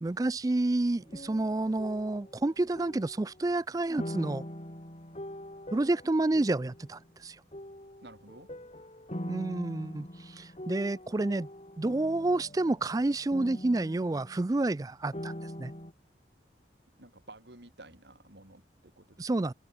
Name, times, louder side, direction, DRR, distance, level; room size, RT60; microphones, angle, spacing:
voice 1, 0.0-4.4 5.7-7.4 9.3-11.5 11.8-15.3 15.6-15.7 19.2-19.5, right 2 dB, 20° right, 0.3 m, -29 dB
sound 1, 1.0-3.4 4.0-7.1 7.5-14.8 15.1-15.9, equal, 35° left, 4.6 m, -43 dB
voice 2, 8.0-8.5 17.0-19.5, right 2 dB, 65° right, 4.9 m, -52 dB
head